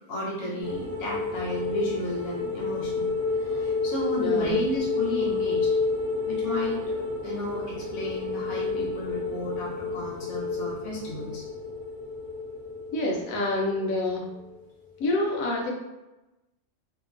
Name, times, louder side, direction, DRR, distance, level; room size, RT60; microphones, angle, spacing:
voice 1, 0.1-3.1 3.4-5.8 6.3-7.0 7.2-11.5, left 1 dB, 70° left, -5 dB, 1.2 m, -33 dB
sound 1, 0.6-14.0 14.3-14.5, left 4 dB, 40° left, 1.0 m, -30 dB
voice 2, 4.2-4.6 12.9-14.3 15.0-15.7, left 2 dB, 90° left, -2 dB, 1.1 m, -27 dB
3.0 x 2.1 x 2.4 m, 1.0 s
omnidirectional pair, 1.4 m